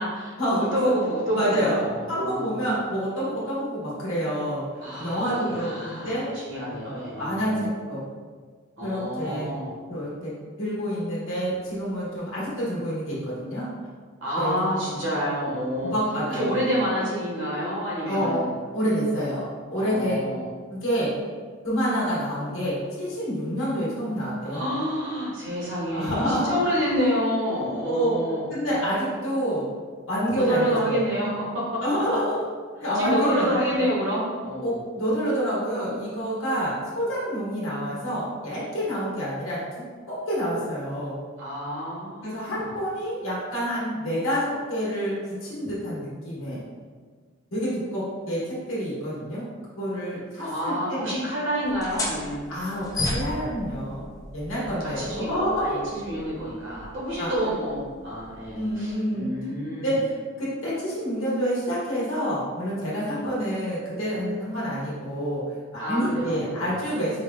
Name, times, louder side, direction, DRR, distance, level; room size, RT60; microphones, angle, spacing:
voice 1, 0.0-2.6 4.8-7.7 8.8-9.7 14.2-15.9 16.3-18.4 19.8-20.5 24.4-28.4 30.4-31.8 32.9-34.8 41.4-42.7 50.4-52.5 54.8-55.3 55.5-59.9 65.8-66.7, equal, 80° right, -6 dB, 1.2 m, -28 dB
voice 2, 1.3-4.7 5.0-6.3 6.7-8.1 8.8-9.5 9.9-10.3 10.6-13.7 14.4-14.7 15.8-16.5 18.1-18.4 18.7-19.4 19.7-20.3 20.7-21.1 21.6-24.6 25.9-26.5 27.8-28.2 28.5-29.6 30.1-31.0 31.8-32.4 32.8-33.8 34.6-41.2 42.2-45.1 45.4-46.6 47.5-49.5 49.8-51.1 52.5-55.8 57.2-57.3 58.5-59.3 59.7-65.4 65.7-67.2, equal, 85° left, -7 dB, 1.2 m, -28 dB
sound 1, 51.6-58.9, left 2 dB, 15° left, 0.3 m, -36 dB
4.6 x 2.2 x 2.2 m, 1.6 s
head